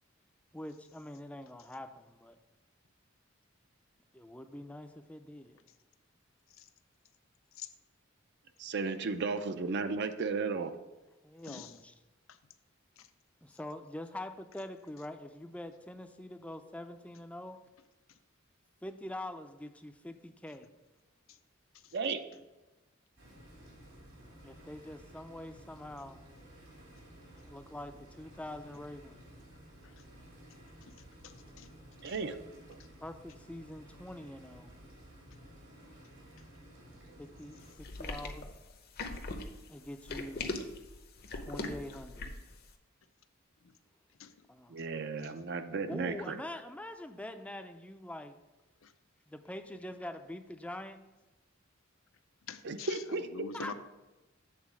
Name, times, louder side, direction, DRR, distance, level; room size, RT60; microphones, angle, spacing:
voice 1, 0.5-2.4 4.1-5.6 11.2-11.8 13.4-17.6 18.8-20.7 24.4-26.2 27.4-29.2 33.0-34.7 37.2-38.5 39.7-40.7 41.3-42.3 44.5-44.8 45.9-48.3 49.3-51.0 53.5-53.7, left 1 dB, 5° left, 7 dB, 0.4 m, -44 dB
voice 2, 8.6-10.7 21.9-22.2 32.0-32.4 44.7-46.4 52.6-53.3, right 4 dB, 60° right, 9 dB, 0.5 m, -34 dB
voice 3, 11.4-11.8 13.0-13.1 21.3-21.4 21.7-22.0 29.8-30.0 30.9-31.0 31.2-31.7 32.0-32.2 36.4-36.5 36.9-37.0 37.7-38.0 43.6-43.7 44.2-44.4 44.8-44.9 45.2-45.4 48.8-48.9 52.5-53.7, left 6 dB, 85° left, 10 dB, 0.6 m, -47 dB
sound 1, 23.2-37.7, right 1 dB, 75° right, 2.6 m, -54 dB
sound 2, 37.8-42.5, left 3 dB, 50° left, 0.7 m, -40 dB
7.5 x 3.9 x 6.1 m, 1.1 s
head